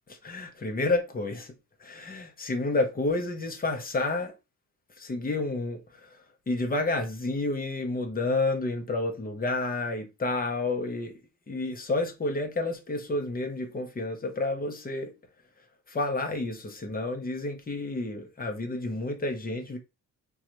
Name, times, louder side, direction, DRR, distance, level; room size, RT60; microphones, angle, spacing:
voice 1, 0.2-1.5 1.8-4.3 5.0-6.2 6.5-11.1 11.5-15.1 15.9-19.8, left 2 dB, 25° left, 0.7 m, -30 dB
3.8 x 2.4 x 2.9 m
cardioid pair, 140°, 38 cm